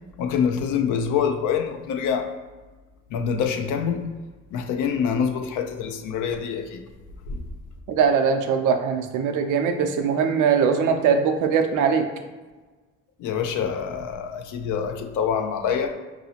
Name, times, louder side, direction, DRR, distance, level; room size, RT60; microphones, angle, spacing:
voice 1, 0.2-2.3 3.1-4.1 4.5-6.8 7.3-7.4 13.2-15.9, left 7 dB, 90° left, 6 dB, 0.5 m, -25 dB
voice 2, 7.9-12.1, right 6 dB, 85° right, 6 dB, 0.5 m, -21 dB
4.8 x 2.7 x 2.8 m, 1.3 s
cardioid pair, 90°, 30 cm